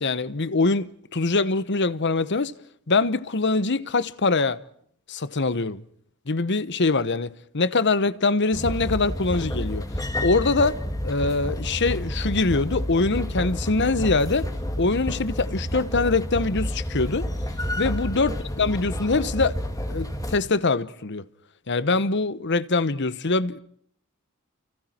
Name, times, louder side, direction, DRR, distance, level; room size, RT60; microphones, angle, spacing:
voice 1, 0.0-2.5 2.9-4.6 5.1-5.8 6.3-9.9 10.2-14.5 14.8-17.3 17.8-19.6 19.9-21.3 21.7-23.6, left 3 dB, 55° left, 1.1 m, -23 dB
sound 1, 8.5-20.4, equal, 15° left, 2.4 m, -30 dB
30.0 x 29.0 x 4.5 m
head